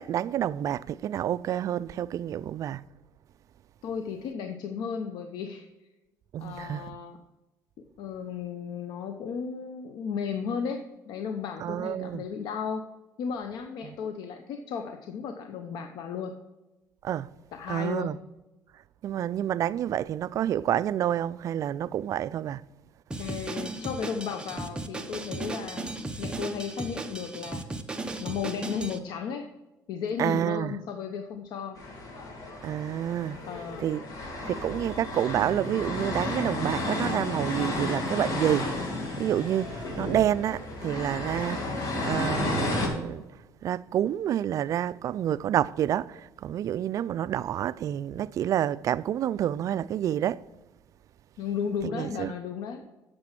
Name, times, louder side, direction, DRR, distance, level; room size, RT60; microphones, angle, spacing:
voice 1, 0.0-2.8 6.3-6.9 11.6-12.3 13.8-14.0 17.0-17.3 17.7-18.2 19.0-22.6 30.2-30.8 32.6-33.4 33.8-34.0 34.5-38.8 39.2-43.3 43.6-50.4 51.8-52.3, right 11 dB, 50° right, 0.3 m, -28 dB
voice 2, 3.8-5.6 6.4-7.2 8.0-10.8 11.1-12.8 13.2-16.3 17.5-18.1 23.2-27.6 28.2-29.5 29.9-31.8 33.5-33.9 51.4-52.8, left 6 dB, 75° left, 0.9 m, -34 dB
Drum kit, 23.1-29.0, right 2 dB, 10° right, 0.8 m, -36 dB
sound 1, 31.8-42.9, left 2 dB, 55° left, 2.6 m, -32 dB
8.9 x 6.9 x 5.9 m
cardioid pair, 130°, 7 cm